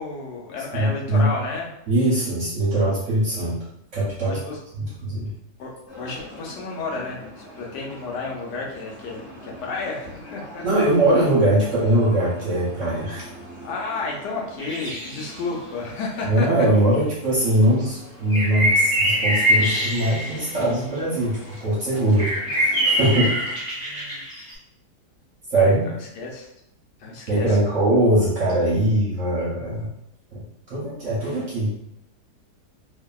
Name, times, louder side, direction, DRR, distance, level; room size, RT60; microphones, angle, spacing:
voice 1, 0.0-1.7 4.2-4.6 5.6-10.6 13.6-16.5 23.7-24.2 25.5-26.5 27.0-27.5, left 3 dB, 75° left, -1 dB, 1.1 m, -32 dB
voice 2, 0.7-1.3 1.9-3.7 3.9-4.4 4.7-5.3 10.6-13.3 16.3-23.3 25.5-25.8 27.3-29.9 30.3-31.7, right 1 dB, 55° right, -7 dB, 0.9 m, -21 dB
sound 1, 5.9-23.6, equal, 25° left, 1.0 m, -43 dB
sound 2, 14.6-15.3 18.3-20.6 22.2-24.5, equal, 5° right, 1.0 m, -23 dB
2.7 x 2.6 x 2.2 m, 0.80 s
omnidirectional pair, 1.9 m